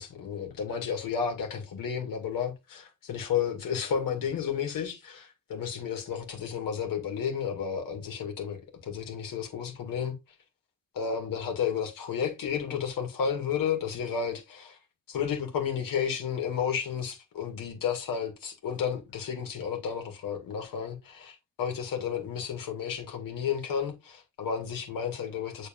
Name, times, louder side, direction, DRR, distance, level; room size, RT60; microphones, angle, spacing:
voice 1, 0.0-10.1 10.9-14.8 15.1-25.7, left 7 dB, 90° left, 2.1 m, -32 dB
7.3 x 3.9 x 3.7 m
cardioid pair, 125°, 33 cm